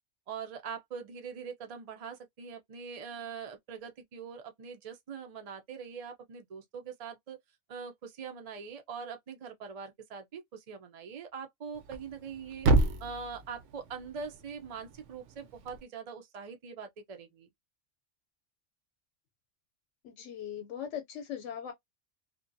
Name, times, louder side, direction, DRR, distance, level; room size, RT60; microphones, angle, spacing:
voice 1, 0.3-7.4 7.7-12.7 13.0-17.5, right 6 dB, 50° right, 0.4 m, -43 dB
Thump thud, 11.7-15.8, right 2 dB, 80° right, 0.9 m, -31 dB
voice 2, 20.0-21.7, left 9 dB, 85° left, 1.0 m, -39 dB
2.8 x 2.2 x 2.5 m
omnidirectional pair, 1.2 m